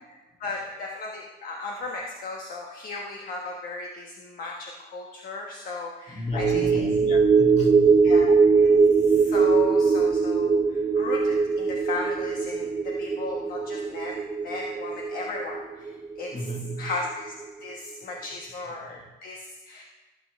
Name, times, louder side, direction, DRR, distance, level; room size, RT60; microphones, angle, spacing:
voice 1, 0.0-6.8 8.0-16.5 16.8-17.3 17.6-19.8, left 3 dB, 60° left, 1 dB, 1.2 m, -36 dB
voice 2, 6.1-8.0 16.3-16.9, equal, 40° left, 0 dB, 2.7 m, -32 dB
sound 1, 6.3-16.9 17.3-17.4, right 5 dB, 25° right, 0.8 m, -22 dB
19.5 x 8.6 x 3.5 m, 1.2 s
cardioid pair, 110°, 17 cm